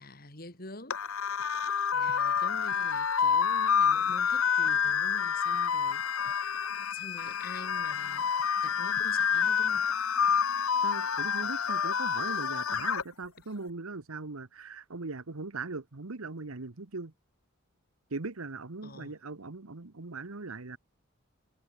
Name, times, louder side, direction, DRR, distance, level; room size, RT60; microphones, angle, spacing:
voice 1, 0.0-1.5 1.9-6.6 6.9-8.3 8.6-9.9 18.8-19.2, left 2 dB, 45° left, 4.5 m, -47 dB
sound 1, 0.9-13.0, left 7 dB, 85° left, 1.0 m, -28 dB
voice 2, 10.8-17.1 18.1-20.8, right 3 dB, 90° right, 1.3 m, -40 dB
head